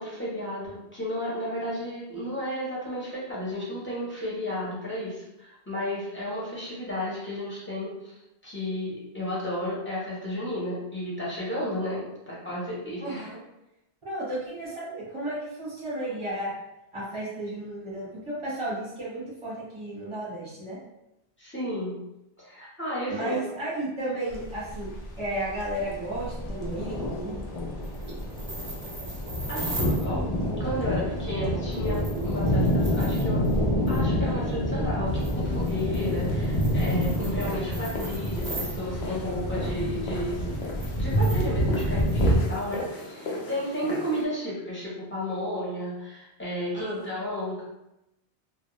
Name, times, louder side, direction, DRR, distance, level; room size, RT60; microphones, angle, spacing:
voice 1, 0.0-8.2 8.4-13.3 21.4-22.0 22.4-23.4 29.5-30.3 30.6-33.4 33.9-40.4 40.9-47.6, left 1 dB, 15° left, -8 dB, 0.7 m, -33 dB
voice 2, 13.0-13.4 14.0-16.5 16.9-20.8 23.1-24.9 25.2-27.4 46.7-47.1, right 1 dB, 30° right, -7 dB, 1.0 m, -33 dB
sound 1, 24.3-42.4, equal, 60° left, 0.4 m, -28 dB
sound 2, 27.8-30.1 31.7-33.6 33.9-34.0 35.2-38.8 40.5-43.1, right 2 dB, 50° right, 0.6 m, -40 dB
sound 3, 35.1-44.3, left 2 dB, 75° left, 0.8 m, -38 dB
2.2 x 2.1 x 2.9 m, 0.89 s
omnidirectional pair, 1.1 m